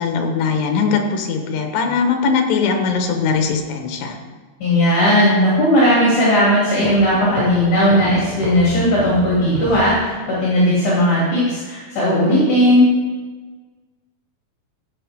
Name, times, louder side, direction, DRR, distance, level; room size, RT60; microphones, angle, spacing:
voice 1, 0.0-4.2, left 5 dB, 70° left, 4 dB, 2.7 m, -20 dB
voice 2, 4.6-12.9, equal, 55° left, -8 dB, 3.8 m, -16 dB
sound 1, 6.8-10.5, right 1 dB, 90° right, 3.6 m, -31 dB
15.0 x 7.2 x 3.5 m, 1.4 s
omnidirectional pair, 4.5 m